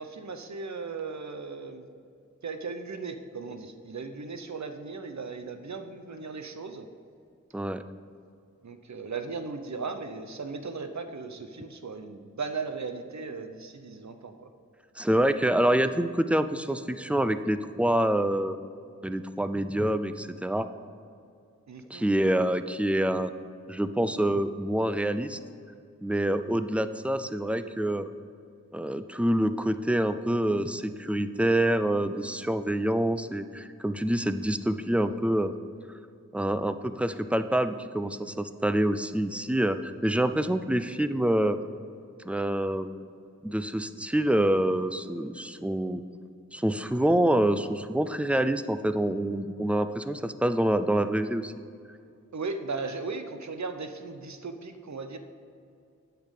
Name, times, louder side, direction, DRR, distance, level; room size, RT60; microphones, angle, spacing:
voice 1, 0.0-1.8 2.4-6.9 8.6-14.5 21.7-22.1 52.3-55.2, right 4 dB, 65° right, 8 dB, 0.8 m, -37 dB
voice 2, 15.0-18.6 19.0-20.7 21.9-23.3 23.7-25.4 26.0-28.1 28.7-35.5 36.3-41.6 42.2-42.9 43.4-46.0 46.5-51.5, right 1 dB, 5° right, 11 dB, 0.5 m, -26 dB
8.8 x 5.9 x 6.5 m, 2.4 s
wide cardioid pair, 55°, 30 cm